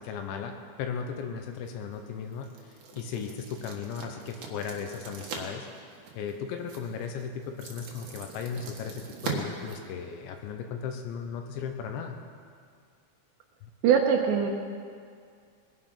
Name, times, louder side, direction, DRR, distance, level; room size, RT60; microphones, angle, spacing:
voice 1, 0.0-5.7 6.2-12.2 13.6-13.7, left 6 dB, 75° left, 5 dB, 2.9 m, -36 dB
sound 1, 1.5-10.5, right 5 dB, 55° right, 2.3 m, -42 dB
voice 2, 13.8-14.5, right 7 dB, 75° right, 2 dB, 2.9 m, -22 dB
21.0 x 11.0 x 5.8 m, 2.2 s
omnidirectional pair, 5.7 m